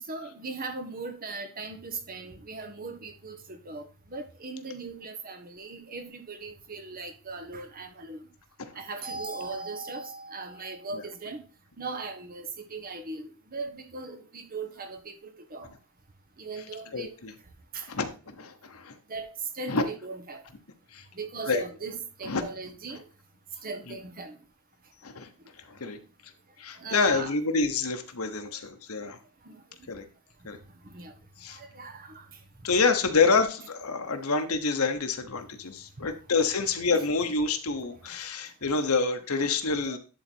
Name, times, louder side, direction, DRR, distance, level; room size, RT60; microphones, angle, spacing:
voice 1, 0.1-8.2 8.8-11.4 11.8-15.1 15.5-15.7 16.4-17.1 17.7-17.9 19.1-19.3 19.6-20.4 21.2-23.0 23.6-24.4 26.8-27.3 28.4-28.5 29.4-29.6 30.9-31.1 31.5-32.2 39.8-40.0, right 3 dB, 40° right, 1.2 m, -38 dB
voice 2, 16.9-17.3 17.9-18.9 19.7-19.8 20.9-21.0 21.5-21.6 22.2-22.4 23.9-24.0 25.0-25.3 25.6-26.0 26.6-29.2 29.9-30.1 30.4-30.6 31.4-31.6 32.6-40.0, left 4 dB, 75° left, 1.2 m, -27 dB
11.0 x 4.0 x 4.6 m
head